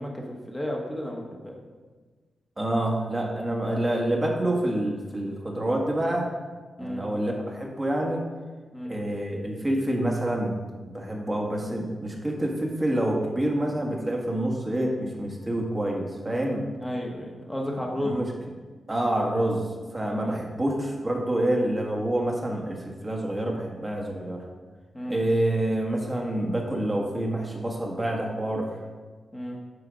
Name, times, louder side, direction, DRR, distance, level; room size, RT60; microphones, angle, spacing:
voice 1, 0.0-1.6 6.8-7.0 8.7-8.9 16.8-18.2 20.1-20.4 24.9-25.2 29.3-29.6, left 1 dB, 10° left, -1 dB, 1.4 m, -33 dB
voice 2, 2.6-6.3 6.8-8.2 8.8-10.6 10.9-16.7 17.9-18.3 18.9-19.7 19.9-24.4 25.1-28.7, right 1 dB, 20° right, -1 dB, 1.6 m, -27 dB
8.1 x 4.9 x 5.1 m, 1.4 s
cardioid pair, 75°, 0 cm